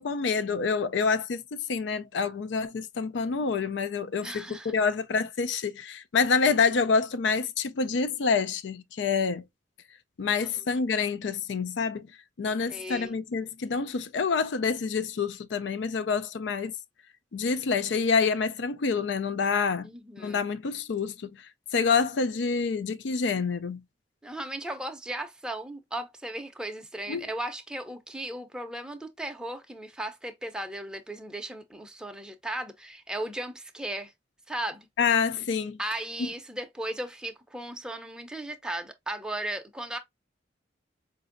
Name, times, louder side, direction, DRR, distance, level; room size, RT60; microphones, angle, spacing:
voice 1, 0.0-9.4 10.2-12.1 12.4-16.7 17.3-19.9 20.2-23.8 27.1-27.3 35.0-35.8 36.2-36.3, left 5 dB, 70° left, 0.4 m, -27 dB
voice 2, 4.2-4.7 10.4-10.5 12.7-13.1 19.8-20.5 24.2-34.1 34.5-34.9 35.8-40.0, right 1 dB, 5° right, 0.6 m, -36 dB
4.9 x 2.6 x 2.5 m
head